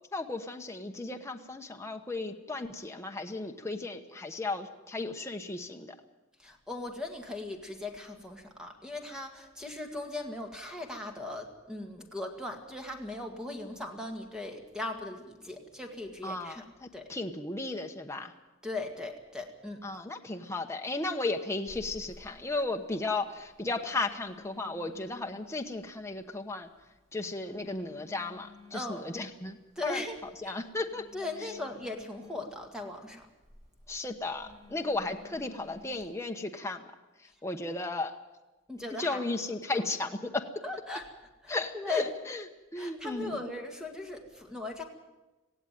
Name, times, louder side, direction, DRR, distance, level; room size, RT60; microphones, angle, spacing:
voice 1, 0.1-6.0 16.2-18.3 19.8-26.7 27.1-31.1 31.4-31.5 33.9-36.9 37.2-38.2 39.0-40.5 41.5-42.5 42.7-43.5, left 2 dB, 15° left, 3 dB, 1.0 m, -35 dB
voice 2, 6.4-16.6 16.9-17.1 18.6-19.8 28.7-29.0 29.8-30.2 30.4-30.6 31.1-33.3 38.7-39.2 39.7-39.8 40.6-41.1 41.4-42.1 42.8-44.8, left 2 dB, 5° right, 3 dB, 1.9 m, -38 dB
Telephone, 21.7-36.0, left 3 dB, 35° right, 5.3 m, -55 dB
18.0 x 16.0 x 9.2 m, 1.1 s
head